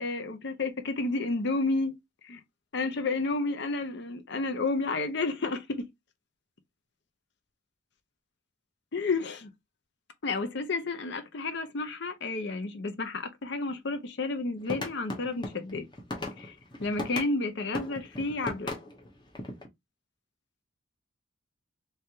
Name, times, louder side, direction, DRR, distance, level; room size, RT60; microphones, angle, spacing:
voice 1, 0.0-2.0 2.2-2.4 2.7-5.9 8.9-9.5 10.2-15.9 16.4-18.8, left 3 dB, 55° left, 0.7 m, -31 dB
sound 1, 14.6-17.3 17.7-19.7, left 2 dB, 20° left, 0.8 m, -37 dB
3.3 x 3.2 x 2.8 m
head